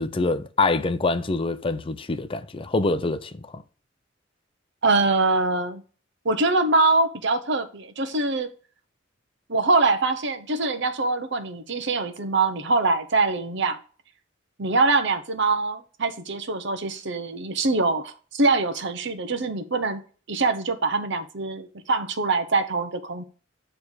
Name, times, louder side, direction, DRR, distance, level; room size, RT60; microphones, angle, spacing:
voice 1, 0.0-3.6, left 3 dB, 30° left, 0.5 m, -25 dB
voice 2, 4.8-5.8 6.2-8.5 9.5-13.8 14.6-20.0 20.3-23.2, right 3 dB, 65° right, 1.0 m, -23 dB
9.6 x 3.4 x 6.5 m
head